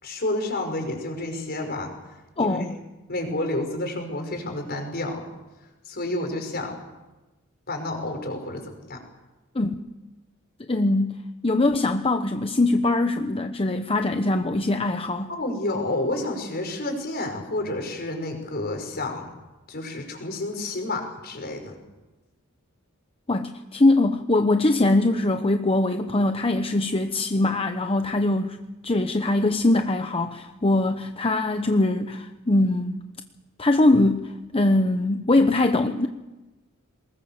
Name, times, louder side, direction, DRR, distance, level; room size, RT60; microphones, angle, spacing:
voice 1, 0.0-1.9 2.4-2.6 3.1-5.3 5.9-6.8 7.7-9.0 15.3-19.3 19.7-21.8, left 2 dB, 50° left, 3 dB, 5.5 m, -30 dB
voice 2, 2.4-2.8 9.5-9.9 10.7-11.2 11.4-15.3 23.3-28.6 28.8-32.9 33.6-36.1, left 2 dB, 25° left, 7 dB, 0.9 m, -22 dB
23.5 x 20.5 x 7.3 m, 1.1 s
head